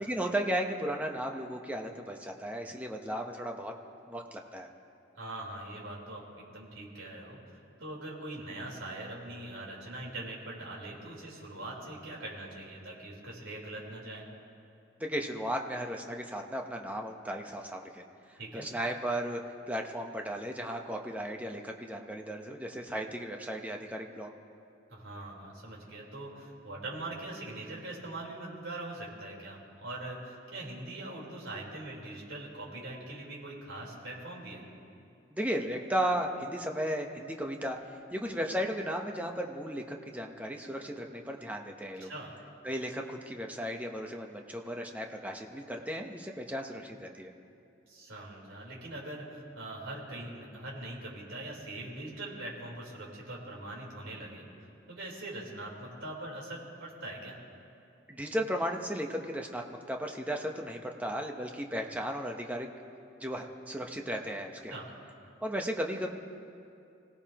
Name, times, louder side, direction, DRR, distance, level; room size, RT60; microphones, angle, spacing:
voice 1, 0.0-3.7 4.1-4.7 15.0-18.0 18.3-19.4 19.7-24.3 35.3-37.8 38.1-42.1 42.6-47.3 58.1-59.6 59.9-62.7 63.2-64.8 65.4-66.1, equal, 5° right, 2 dB, 1.0 m, -35 dB
voice 2, 5.1-7.4 7.8-14.2 18.4-18.7 24.9-34.6 42.0-42.3 47.9-57.4 64.7-64.9, right 2 dB, 80° right, -4 dB, 4.1 m, -42 dB
26.0 x 17.5 x 3.0 m, 2.5 s
head